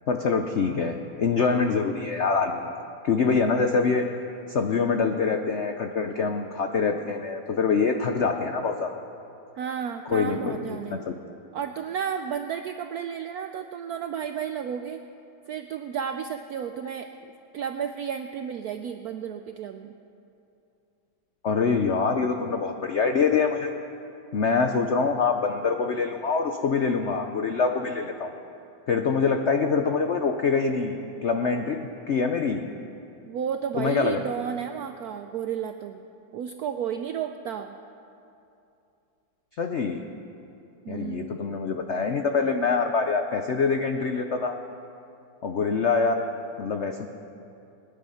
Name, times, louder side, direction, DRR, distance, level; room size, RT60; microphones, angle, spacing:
voice 1, 0.1-2.7 3.0-4.1 4.5-8.9 10.1-11.2 21.4-23.7 24.3-28.3 28.9-31.8 32.1-32.7 33.8-34.2 39.6-40.0 40.9-44.6 45.4-46.2 46.6-47.1, left 5 dB, 80° left, 5 dB, 0.6 m, -25 dB
voice 2, 9.6-11.0 11.5-15.0 15.5-17.1 17.5-19.9 33.2-36.0 36.3-37.7 40.8-41.4, right 8 dB, 80° right, 7 dB, 0.8 m, -32 dB
20.5 x 9.9 x 5.7 m, 2.7 s
omnidirectional pair, 2.2 m